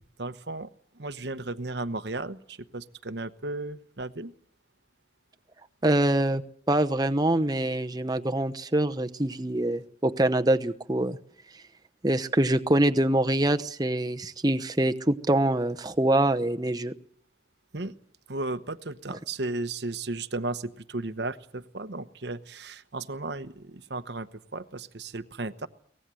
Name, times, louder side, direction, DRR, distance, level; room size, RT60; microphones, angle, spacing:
voice 1, 0.2-0.7 0.9-4.3 17.7-17.9 18.3-25.7, right 2 dB, 60° right, 12 dB, 1.0 m, -35 dB
voice 2, 5.8-6.4 6.7-11.2 12.0-16.9, right 1 dB, 20° right, 8 dB, 0.9 m, -24 dB
23.5 x 19.0 x 7.6 m, 0.62 s
head